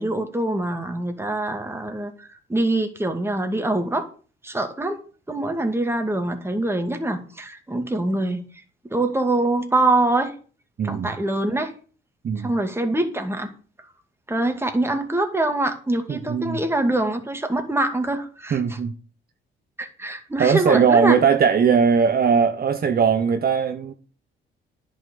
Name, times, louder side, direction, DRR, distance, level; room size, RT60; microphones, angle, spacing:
voice 1, 0.0-4.1 4.4-5.0 5.3-8.4 8.9-10.3 10.8-11.7 12.4-13.5 14.3-18.8 19.8-21.2, right 2 dB, 10° right, 2.4 m, -24 dB
voice 2, 10.8-11.1 12.2-12.5 16.1-16.6 18.5-18.9 20.4-23.9, right 6 dB, 50° right, 1.2 m, -19 dB
10.5 x 6.1 x 8.6 m
cardioid pair, 90°, 20 cm